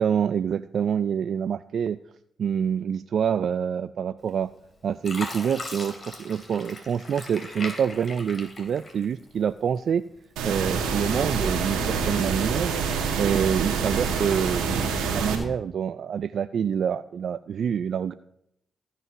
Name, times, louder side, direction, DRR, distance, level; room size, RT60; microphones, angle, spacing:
voice 1, 0.0-2.0 2.4-4.5 4.8-10.0 10.4-12.7 13.2-18.1, right 8 dB, 65° right, 13 dB, 0.4 m, -26 dB
Fill (with liquid), 4.3-4.7 5.0-9.4 9.9-10.7 11.2-11.4, left 2 dB, 40° left, 3.2 m, -39 dB
sound 1, 10.4-15.4, right 5 dB, 80° right, 1.8 m, -26 dB
14.5 x 5.6 x 6.0 m, 0.76 s
hypercardioid pair, 45°, 0 cm